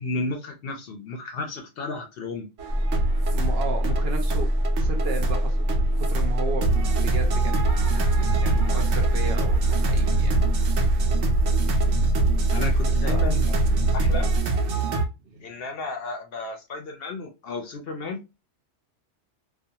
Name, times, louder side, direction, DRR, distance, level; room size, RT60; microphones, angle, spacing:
voice 1, 0.0-2.5 12.5-13.6 13.9-14.3 15.4-18.4, left 3 dB, 60° left, 0.7 m, -33 dB
sound 1, 2.6-15.1, right 4 dB, 85° right, 1.0 m, -26 dB
sound 2, 2.7-14.4, equal, 5° left, 0.7 m, -24 dB
voice 2, 3.3-6.7 7.0-7.8 8.4-10.4 13.0-13.4 14.8-14.9 15.3-15.5, right 3 dB, 65° right, 0.8 m, -35 dB
2.4 x 2.3 x 2.7 m
omnidirectional pair, 1.2 m